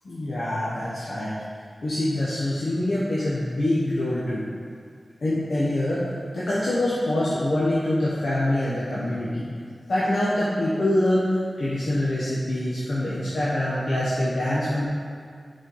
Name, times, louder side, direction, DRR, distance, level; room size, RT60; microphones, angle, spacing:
voice 1, 0.0-1.3 1.8-4.4 5.2-6.0 6.3-9.4 9.9-11.3 11.6-14.9, left 1 dB, 75° left, -9 dB, 1.2 m, -25 dB
6.5 x 4.4 x 4.6 m, 2.2 s
wide cardioid pair, 110°, 0 cm